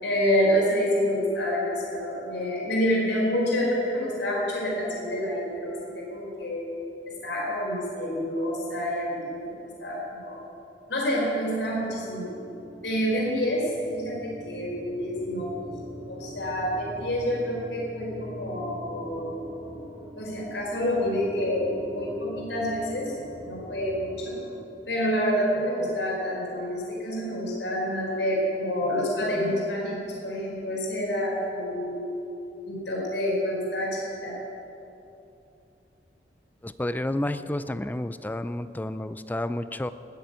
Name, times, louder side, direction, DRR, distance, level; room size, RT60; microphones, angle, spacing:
voice 1, 0.0-6.6 7.1-9.5 9.8-10.4 10.9-12.2 12.8-15.5 16.1-19.3 20.2-24.4 24.9-32.0 32.6-34.3, equal, 90° left, -4 dB, 4.8 m, -28 dB
sound 1, 11.5-25.2, right 1 dB, 15° right, 1.2 m, -43 dB
voice 2, 36.6-39.9, left 1 dB, 10° left, 12 dB, 0.4 m, -30 dB
19.0 x 7.1 x 9.4 m, 2.8 s
head